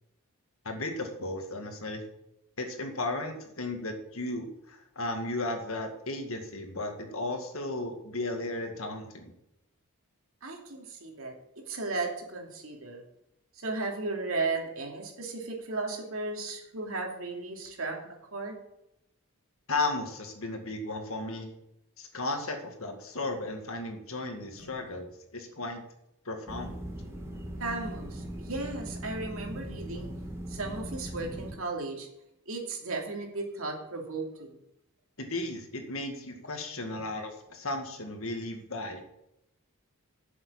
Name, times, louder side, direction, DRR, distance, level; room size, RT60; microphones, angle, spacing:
voice 1, 0.6-2.0 2.6-9.3 19.7-21.5 22.0-25.8 26.3-26.7 35.2-39.0, left 2 dB, 65° left, 5 dB, 2.0 m, -35 dB
voice 2, 10.4-11.3 11.7-13.0 13.5-18.0 18.3-18.5 24.5-24.7 27.6-30.1 30.5-32.1 32.5-34.6, right 3 dB, 65° right, 1 dB, 2.8 m, -35 dB
sound 1, 26.5-31.5, right 1 dB, 10° right, 2.2 m, -39 dB
9.1 x 7.2 x 8.6 m, 0.82 s
head